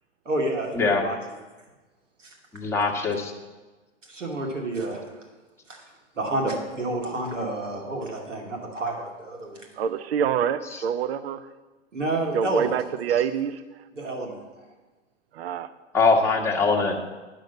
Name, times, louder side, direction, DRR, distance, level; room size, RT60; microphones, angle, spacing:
voice 1, 0.3-1.2 2.2-2.3 4.1-5.0 5.7-5.8 6.2-9.7 11.9-12.7 14.0-14.4, right 2 dB, 80° right, 0 dB, 2.4 m, -29 dB
voice 2, 2.5-3.3 15.9-17.0, left 4 dB, 5° left, -2 dB, 1.3 m, -22 dB
voice 3, 9.8-11.5 12.3-13.8 15.3-15.7, right 8 dB, 55° right, 13 dB, 0.6 m, -26 dB
9.5 x 6.4 x 7.3 m, 1.2 s
figure-of-eight pair, 110°, 37 cm